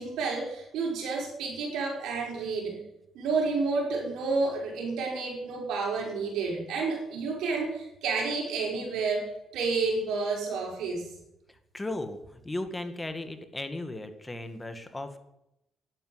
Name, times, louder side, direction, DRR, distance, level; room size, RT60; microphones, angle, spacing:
voice 1, 0.0-2.8 3.1-11.1, right 4 dB, 85° right, 0 dB, 5.5 m, -30 dB
voice 2, 11.7-15.2, left 2 dB, 15° left, 8 dB, 2.1 m, -36 dB
12.0 x 12.0 x 7.9 m, 0.83 s
cardioid pair, 90°, 0 cm